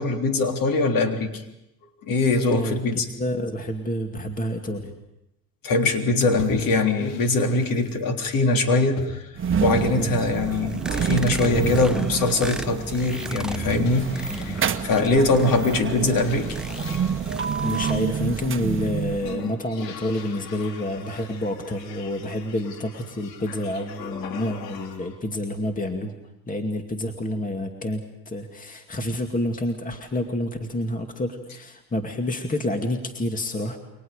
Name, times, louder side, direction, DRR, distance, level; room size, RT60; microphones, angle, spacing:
voice 1, 0.0-1.4 2.0-3.1 5.6-9.3 9.6-16.6, left 2 dB, 40° left, 4 dB, 3.5 m, -22 dB
voice 2, 2.5-4.9 10.0-10.2 11.4-12.1 14.3-14.6 17.6-26.1 26.5-33.8, left 1 dB, 15° left, 5 dB, 2.4 m, -28 dB
sound 1, 6.2-8.0 9.0-10.2 11.3-12.6 13.7-15.4 16.1-17.6 18.2-18.9 19.2-25.2, left 7 dB, 75° left, 3.3 m, -42 dB
sound 2, 9.4-19.5, right 7 dB, 25° right, 1.4 m, -28 dB
sound 3, 10.3-18.0, right 1 dB, ahead, 0.9 m, -36 dB
29.0 x 24.0 x 5.2 m, 0.86 s
hypercardioid pair, 80°, 49 cm